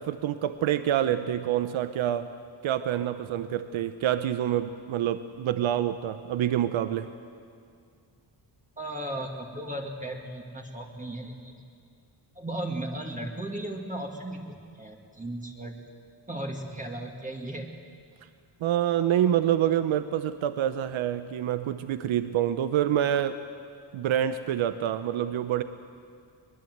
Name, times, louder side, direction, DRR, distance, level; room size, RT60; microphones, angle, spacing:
voice 1, 0.0-2.3 2.6-7.1 18.6-23.4 23.9-25.6, right 11 dB, 85° right, 11 dB, 0.9 m, -27 dB
voice 2, 8.8-11.6 12.4-15.8 16.3-17.7, right 1 dB, 15° right, 0 dB, 2.2 m, -36 dB
22.5 x 21.0 x 8.0 m, 2.3 s
cardioid pair, 110°, 46 cm